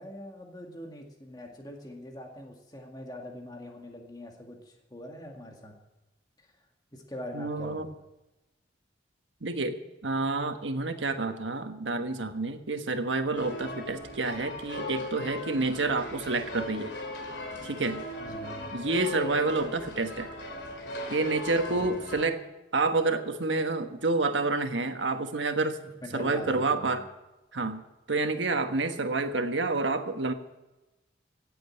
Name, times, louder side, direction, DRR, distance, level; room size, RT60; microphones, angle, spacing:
voice 1, 0.0-5.7 6.4-6.5 6.9-8.0 18.2-18.7 21.7-22.1 26.0-27.1, left 1 dB, 20° left, 1 dB, 2.0 m, -43 dB
voice 2, 7.3-7.9 9.4-9.7 10.0-16.9 17.6-18.0 18.7-20.3 21.1-22.4 22.7-25.8 26.1-27.0 27.5-27.8 28.1-30.3, right 3 dB, 90° right, 7 dB, 1.4 m, -28 dB
sound 1, 13.3-22.3, left 1 dB, 75° left, 2.7 m, -38 dB
16.0 x 7.9 x 8.8 m, 1.0 s
head